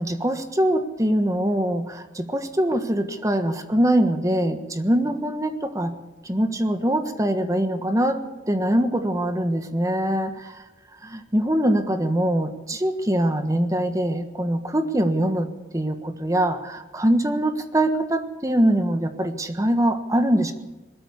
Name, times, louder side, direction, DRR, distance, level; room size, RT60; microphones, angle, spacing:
voice 1, 0.0-5.9 6.2-8.2 8.5-10.5 11.0-20.5, right 1 dB, 15° right, 8 dB, 1.4 m, -23 dB
20.5 x 13.5 x 9.7 m, 1.1 s
head